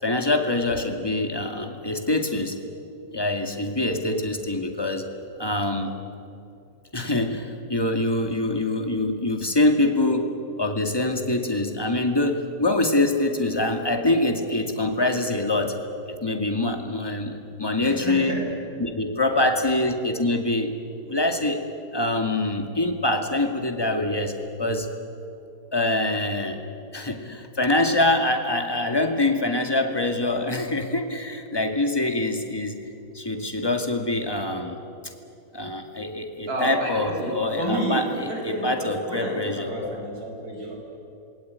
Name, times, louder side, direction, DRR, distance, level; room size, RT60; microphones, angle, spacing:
voice 1, 0.0-2.6 3.1-5.1 5.4-5.9 6.9-18.4 18.8-20.7 21.1-21.6 21.9-24.9 25.7-26.6 26.9-32.8 33.1-34.8 35.5-38.1 38.4-39.9, left 2 dB, 15° left, 4 dB, 2.2 m, -24 dB
voice 2, 17.8-18.5 36.5-40.8, right 1 dB, 55° right, 0 dB, 5.9 m, -30 dB
27.5 x 22.0 x 9.6 m, 2.7 s
omnidirectional pair, 1.9 m